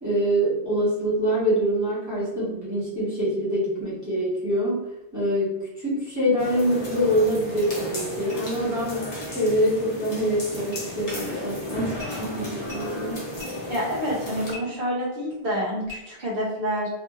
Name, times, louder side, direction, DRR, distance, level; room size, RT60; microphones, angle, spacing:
voice 1, 0.0-4.8 5.1-5.5 5.8-13.2, equal, 15° right, -9 dB, 1.2 m, -25 dB
sound 1, 6.4-14.5, equal, 50° left, 0.9 m, -34 dB
sound 2, 7.6-7.7 8.0-8.1 8.3-8.4 10.7-11.0 11.9-12.2 12.6-13.7 14.5-14.6 15.8-16.0, left 2 dB, 35° right, 1.5 m, -42 dB
voice 2, 13.7-16.9, equal, 60° right, -4 dB, 1.1 m, -28 dB
2.8 x 2.6 x 2.4 m, 0.92 s
omnidirectional pair, 1.1 m